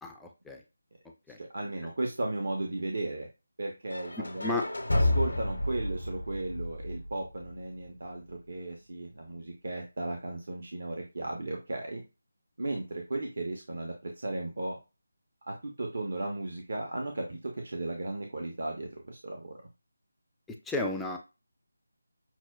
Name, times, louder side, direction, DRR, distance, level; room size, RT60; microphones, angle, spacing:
voice 1, 0.0-0.6 1.3-1.4 4.2-4.6 20.6-21.2, left 2 dB, 5° left, 1 dB, 0.3 m, -33 dB
voice 2, 1.4-3.3 3.6-4.6 4.9-12.0 12.6-14.8 15.5-19.6, right 2 dB, 60° right, 2 dB, 0.7 m, -35 dB
sound 1, 3.9-7.8, left 1 dB, 80° left, 0.7 m, -31 dB
5.9 x 2.2 x 2.2 m, 0.28 s
figure-of-eight pair, 160°, 0 cm